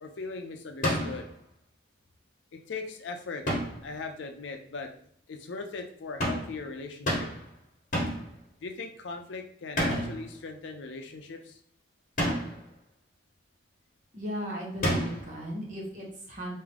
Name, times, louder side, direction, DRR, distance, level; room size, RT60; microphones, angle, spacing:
voice 1, 0.0-1.3 2.5-3.4 3.8-4.9 5.3-7.3 8.6-11.6, left 4 dB, 80° left, 5 dB, 0.5 m, -39 dB
sound 1, 0.8-1.3 3.5-3.9 6.2-6.6 7.1-7.5 7.9-8.3 9.8-10.3 12.2-12.6 14.8-15.3, equal, 45° left, 1.0 m, -29 dB
voice 2, 14.1-16.6, equal, 40° right, -2 dB, 1.0 m, -36 dB
3.6 x 2.6 x 3.4 m, 0.63 s
head